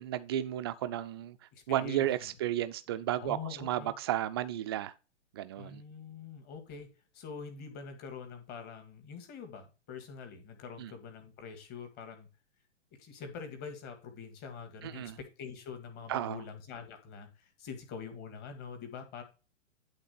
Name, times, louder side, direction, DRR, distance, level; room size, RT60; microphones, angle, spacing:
voice 1, 0.0-1.4 1.7-4.9 5.3-5.8 10.8-10.9 14.8-15.2 16.1-16.4, right 12 dB, 20° right, 0.4 m, -33 dB
voice 2, 1.5-2.0 3.2-3.9 5.6-12.3 13.0-19.2, left 6 dB, 25° left, 1.9 m, -45 dB
11.0 x 3.9 x 5.0 m
figure-of-eight pair, 110°, 37 cm